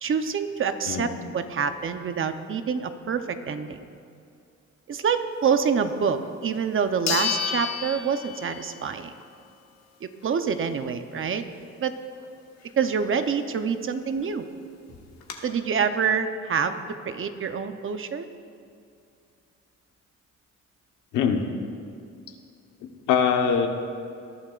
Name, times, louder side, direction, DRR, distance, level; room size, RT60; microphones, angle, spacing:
voice 1, 0.0-3.8 4.9-9.1 10.0-11.4 11.8-11.9 12.8-14.4 15.4-16.8 17.1-18.3, right 6 dB, 45° right, 9 dB, 0.8 m, -26 dB
sound 1, 6.2-6.3 7.1-8.8 9.2-9.3 13.9-14.0 14.2-14.3 14.9-15.3, left 7 dB, 60° left, 1.6 m, -30 dB
voice 2, 23.1-23.7, left 7 dB, 90° left, 4 dB, 1.1 m, -22 dB
20.5 x 11.5 x 2.5 m, 2.5 s
cardioid pair, 90°, 30 cm